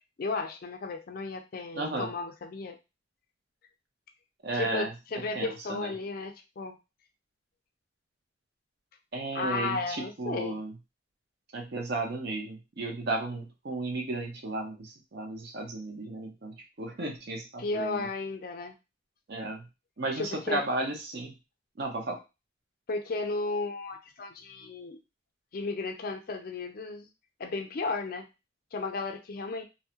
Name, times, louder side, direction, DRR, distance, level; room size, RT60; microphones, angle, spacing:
voice 1, 0.2-2.8 4.5-6.8 9.3-10.6 17.6-18.8 20.2-20.6 22.9-25.0 25.5-27.1 27.4-28.3 28.7-29.6, left 3 dB, 55° left, 5 dB, 0.4 m, -34 dB
voice 2, 1.8-2.1 4.4-4.9 5.3-5.9 9.1-10.7 11.5-18.1 19.3-19.6 20.0-21.3 21.8-22.2, right 2 dB, 65° right, 2 dB, 0.7 m, -34 dB
2.6 x 2.1 x 2.8 m, 0.26 s
head